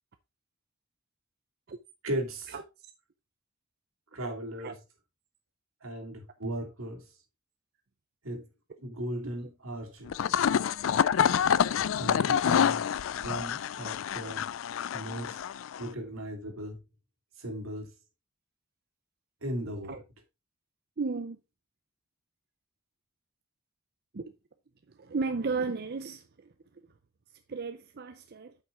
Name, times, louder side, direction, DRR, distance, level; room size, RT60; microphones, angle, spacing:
voice 1, 2.0-2.6 4.1-4.7 5.8-7.0 8.2-8.5 8.8-10.1 11.9-12.8 13.2-14.4 14.9-15.4 15.8-16.8 17.4-17.9 19.4-20.0, right 1 dB, 80° right, 2.6 m, -37 dB
voice 2, 9.0-9.3 19.9-20.0 21.0-21.4 24.1-24.3 25.0-26.5 27.5-28.6, right 4 dB, 50° right, 0.5 m, -34 dB
sound 1, 10.1-15.9, left 8 dB, 70° left, 0.4 m, -27 dB
9.0 x 5.8 x 3.7 m
head